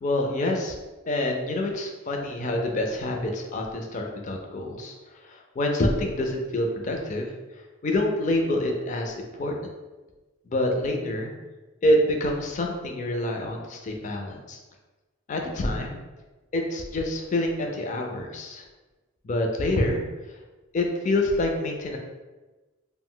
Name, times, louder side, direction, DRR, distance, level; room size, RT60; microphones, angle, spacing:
voice 1, 0.0-0.8 1.1-7.3 7.8-9.6 10.5-11.3 11.8-14.6 15.3-16.0 16.5-18.6 19.2-20.0 20.7-22.0, left 1 dB, 35° left, 2 dB, 0.4 m, -27 dB
2.4 x 2.1 x 3.7 m, 1.2 s
head